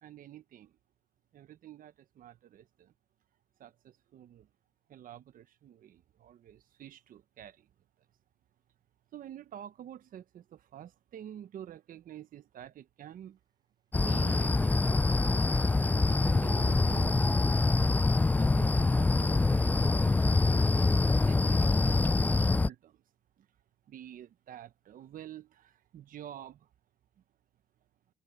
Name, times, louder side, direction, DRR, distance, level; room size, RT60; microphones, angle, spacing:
voice 1, 0.0-0.7 1.3-2.9 3.6-4.5 4.9-7.7 9.1-13.4 14.0-15.2 16.0-17.6 18.4-20.9 21.2-23.0 23.9-26.7, right 10 dB, 55° right, 1.3 m, -48 dB
sound 1, 13.9-22.7, left 3 dB, 10° left, 0.4 m, -25 dB
sound 2, 14.3-15.7 16.0-16.3 19.4-21.3, right 3 dB, 25° right, 7.3 m, -58 dB
cardioid pair, 110°, 17 cm